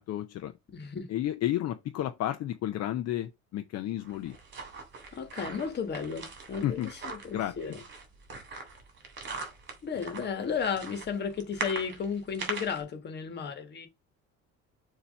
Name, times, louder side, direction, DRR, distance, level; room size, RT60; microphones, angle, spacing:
voice 1, 0.0-0.5 1.1-4.4 6.6-6.9 7.3-7.7, left 12 dB, 60° left, 0.7 m, -32 dB
voice 2, 0.7-1.1 5.1-7.8 9.8-13.9, left 6 dB, 35° left, 1.6 m, -34 dB
sound 1, 4.0-12.8, right 4 dB, 40° right, 2.8 m, -41 dB
7.0 x 3.0 x 5.2 m
cardioid pair, 165°, 30 cm